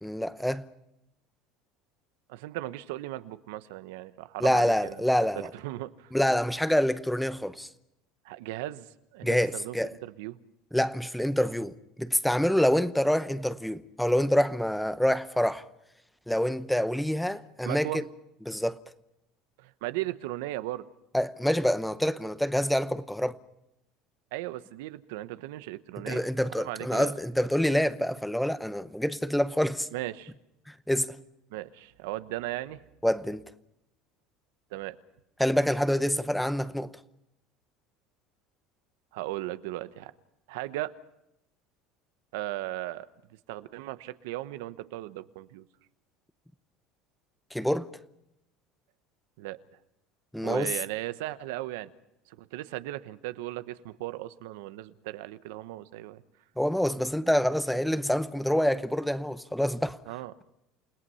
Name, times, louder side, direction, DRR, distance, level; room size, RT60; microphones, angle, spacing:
voice 1, 0.0-0.7 4.4-5.5 6.1-7.7 9.2-9.9 10.7-15.6 16.3-18.0 18.5-18.8 21.1-23.4 26.1-29.9 30.7-31.2 33.0-33.4 35.4-36.9 47.5-47.9 50.3-50.7 56.6-60.0, equal, ahead, 0.8 m, -26 dB
voice 2, 2.3-6.1 8.2-10.4 17.6-18.0 19.6-20.9 24.3-26.2 26.5-27.1 29.9-30.3 31.5-32.8 34.7-35.0 39.1-40.1 40.5-40.9 42.3-43.1 43.5-45.7 49.4-49.6 50.4-51.9 52.3-56.2 60.1-60.3, right 16 dB, 85° right, 1.0 m, -37 dB
29.5 x 18.5 x 5.6 m
supercardioid pair, 130°, 0 cm